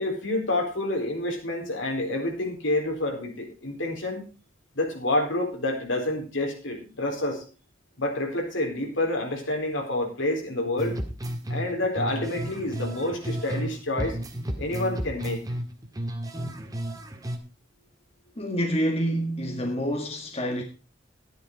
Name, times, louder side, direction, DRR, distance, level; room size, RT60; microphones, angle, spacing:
voice 1, 0.0-4.2 4.7-7.4 8.0-11.0 11.5-14.2 14.6-15.4, left 1 dB, 75° left, 4.2 m, -28 dB
sound 1, 10.8-13.7 14.0-17.4, equal, 20° right, 1.6 m, -32 dB
voice 2, 18.4-20.6, equal, 30° left, 1.7 m, -27 dB
12.5 x 10.5 x 4.7 m
head